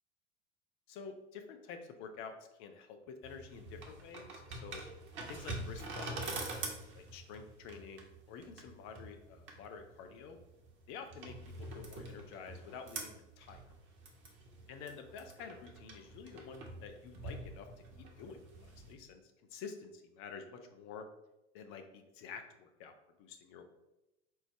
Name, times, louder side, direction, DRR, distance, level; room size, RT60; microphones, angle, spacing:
voice 1, 0.9-4.8 5.3-6.4 6.9-10.4 10.9-13.6 14.7-17.7 18.0-21.0 21.5-23.6, left 6 dB, 35° left, 6 dB, 0.6 m, -49 dB
sound 1, 3.2-18.9, right 2 dB, 35° right, 0.9 m, -46 dB
4.6 x 2.1 x 4.4 m, 0.95 s
figure-of-eight pair, 80°, 35 cm